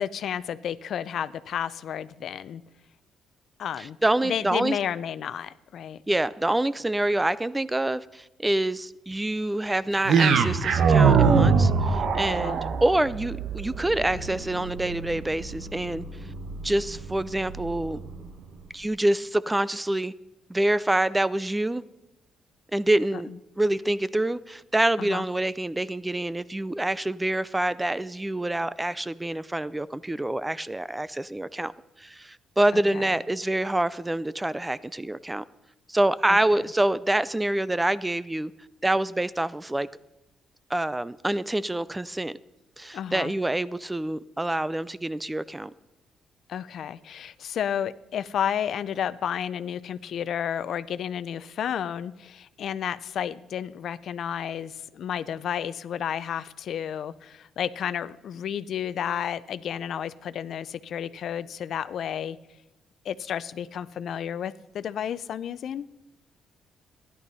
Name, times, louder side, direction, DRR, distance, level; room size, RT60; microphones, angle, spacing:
voice 1, 0.0-2.6 3.6-4.0 4.2-6.0 12.3-12.6 25.0-25.2 32.7-33.0 36.3-36.4 42.9-43.3 46.5-62.4 63.0-65.9, left 9 dB, 65° left, 0.5 m, -32 dB
voice 2, 3.8-4.8 6.1-16.0 16.6-18.0 18.7-20.1 20.5-21.8 22.7-23.3 23.6-31.7 32.0-35.4 35.9-38.5 38.8-39.9 40.7-42.3 42.8-45.7, right 1 dB, 10° right, 0.4 m, -26 dB
sound 1, 10.1-18.3, right 5 dB, 70° right, 1.0 m, -24 dB
13.5 x 11.0 x 5.5 m
cardioid pair, 90°, 0 cm